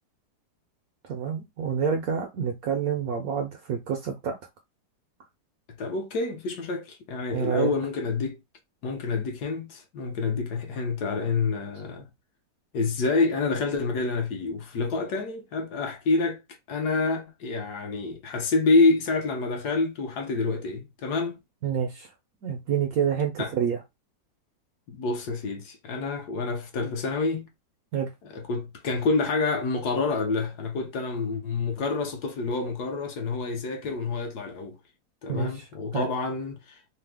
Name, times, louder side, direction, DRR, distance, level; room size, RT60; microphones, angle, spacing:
voice 1, 1.1-4.4 7.3-7.7 21.6-22.1 22.4-23.8 27.9-28.1 35.3-35.7 35.9-36.1, right 7 dB, 70° right, 0.8 m, -28 dB
voice 2, 5.7-8.4 8.8-12.1 12.7-16.4 16.7-21.4 23.4-23.5 24.9-27.5 28.2-34.8 35.2-36.8, left 3 dB, 70° left, 1.2 m, -27 dB
3.2 x 2.0 x 3.3 m
omnidirectional pair, 1.9 m